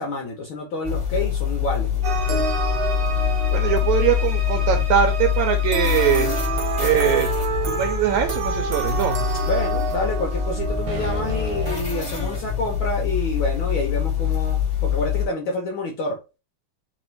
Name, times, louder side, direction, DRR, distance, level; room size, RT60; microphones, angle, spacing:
voice 1, 0.0-2.0 2.3-2.5 9.4-16.2, left 2 dB, 75° left, 1 dB, 1.2 m, -28 dB
sound 1, 0.8-15.2, left 10 dB, 20° left, 1.1 m, -25 dB
sound 2, 2.0-11.8, right 5 dB, 55° right, 1.5 m, -28 dB
voice 2, 3.5-6.3 6.8-7.3 7.7-9.2, right 9 dB, 80° right, 6 dB, 1.9 m, -22 dB
4.0 x 3.7 x 3.1 m, 0.28 s
omnidirectional pair, 3.5 m